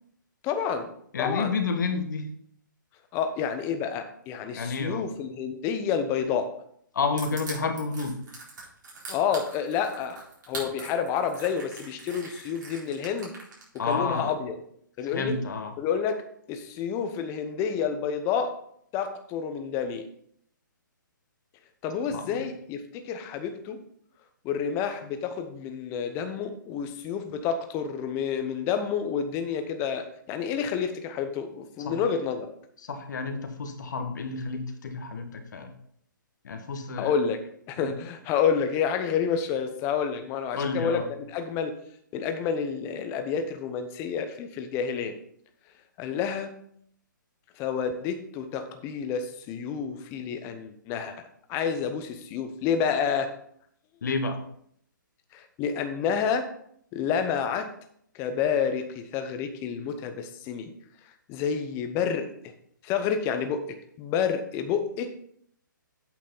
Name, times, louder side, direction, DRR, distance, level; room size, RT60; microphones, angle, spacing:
voice 1, 0.4-0.9 1.2-1.5 3.1-6.5 9.1-10.2 10.5-13.3 13.9-14.6 15.0-15.3 15.8-16.2 16.5-18.5 18.9-20.1 21.8-23.8 24.4-32.5 37.0-37.4 37.7-41.8 42.1-45.2 46.0-46.5 47.6-51.2 51.5-53.3 55.3-56.5 56.9-57.7 58.1-60.7 61.3-62.5 62.8-65.1, left 7 dB, 25° left, 8 dB, 0.9 m, -29 dB
voice 2, 1.1-2.3 4.5-5.1 6.9-8.2 13.8-14.3 15.0-15.7 22.1-22.4 31.8-32.0 32.8-35.7 36.4-37.2 37.8-38.0 40.5-41.1 54.0-54.4, left 4 dB, 60° left, 5 dB, 1.5 m, -30 dB
Crushing, 7.2-13.9, right 3 dB, 65° right, 4.1 m, -42 dB
8.7 x 6.5 x 3.9 m, 0.67 s
hypercardioid pair, 140°, 11 cm